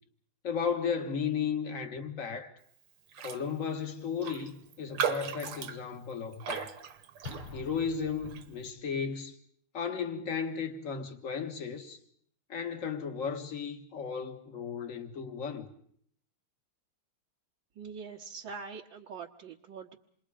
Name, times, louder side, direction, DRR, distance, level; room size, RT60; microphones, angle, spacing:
voice 1, 0.4-2.6 3.2-6.8 7.5-9.4 9.7-12.0 12.5-15.7, left 6 dB, 40° left, 1.9 m, -35 dB
Raindrop, 3.1-3.5 3.7-3.8 4.2-7.8 8.2-8.5, right 7 dB, 85° right, 2.1 m, -37 dB
Explosion, 7.2-8.9, left 5 dB, 90° left, 3.5 m, -46 dB
voice 2, 17.8-20.0, right 5 dB, 65° right, 1.9 m, -43 dB
28.0 x 22.5 x 5.0 m
omnidirectional pair, 2.4 m